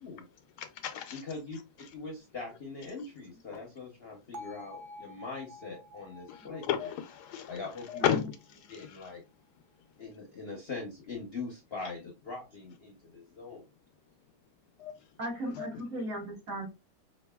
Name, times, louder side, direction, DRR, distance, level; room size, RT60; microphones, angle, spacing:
voice 1, 0.6-1.1 6.3-6.4 6.7-7.5 7.9-8.2 14.8-14.9 15.6-15.7, left 9 dB, 75° left, 1.1 m, -31 dB
voice 2, 1.1-1.6 1.9-6.9 7.5-8.2 8.7-9.2 10.0-13.6, left 4 dB, 50° left, 0.8 m, -42 dB
Bell, 4.3-8.4, left 1 dB, 65° right, 0.7 m, -49 dB
voice 3, 15.2-16.7, right 1 dB, 50° right, 2.2 m, -36 dB
5.2 x 2.5 x 2.2 m
omnidirectional pair, 1.8 m